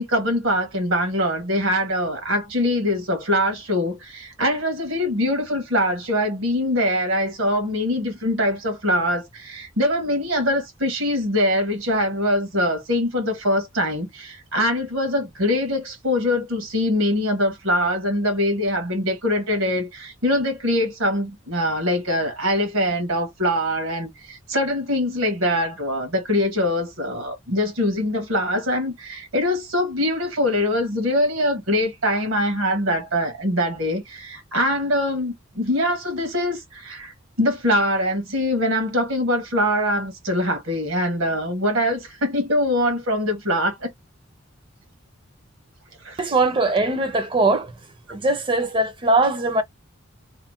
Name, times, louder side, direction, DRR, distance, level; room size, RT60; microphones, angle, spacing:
voice 1, 0.0-43.9 46.0-46.2, left 1 dB, 85° right, 1.2 m, -23 dB
voice 2, 46.2-47.7 48.1-49.6, right 2 dB, 25° right, 0.4 m, -21 dB
2.9 x 2.1 x 3.0 m
head